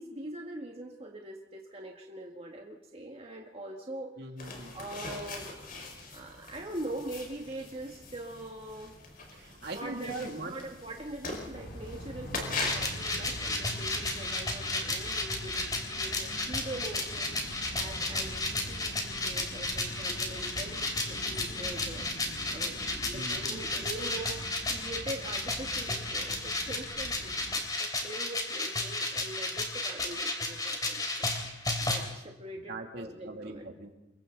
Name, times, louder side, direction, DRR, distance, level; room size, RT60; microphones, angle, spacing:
voice 1, 0.0-4.1 4.7-5.5 6.1-8.9 9.7-17.3 17.7-22.1 22.5-24.4 24.7-31.3 31.8-33.7, right 1 dB, 30° right, 0 dB, 1.8 m, -42 dB
voice 2, 4.2-4.9 9.3-10.5 23.1-23.9 32.6-33.9, right 2 dB, 60° right, 2 dB, 2.8 m, -41 dB
sound 1, 4.4-12.9, left 3 dB, 50° left, 5.0 m, -41 dB
sound 2, 11.5-27.6, equal, 70° left, 6.9 m, -44 dB
sound 3, 12.6-32.0, left 2 dB, 20° left, 3.4 m, -33 dB
28.0 x 23.0 x 4.0 m, 0.97 s
head